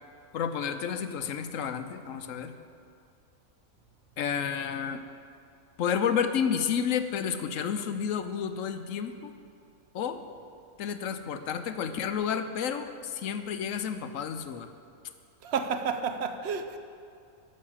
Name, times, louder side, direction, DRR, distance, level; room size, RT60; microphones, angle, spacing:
voice 1, 0.3-2.5 4.2-5.0 5.8-9.3 9.9-10.2 10.8-14.7, left 7 dB, 65° left, 9 dB, 1.0 m, -31 dB
voice 2, 15.4-16.8, right 6 dB, 55° right, 8 dB, 0.8 m, -30 dB
11.5 x 6.6 x 7.1 m, 2.5 s
omnidirectional pair, 1.6 m